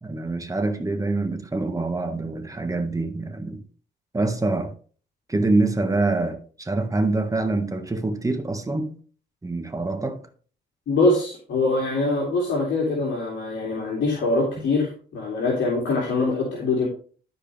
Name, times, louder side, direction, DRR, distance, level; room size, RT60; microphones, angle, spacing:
voice 1, 0.0-3.6 4.1-4.7 5.3-9.0 9.4-10.2, right 2 dB, 15° right, 1.6 m, -25 dB
voice 2, 10.9-16.9, left 3 dB, 65° left, 2.8 m, -23 dB
12.5 x 4.9 x 3.4 m
cardioid pair, 90°, 20 cm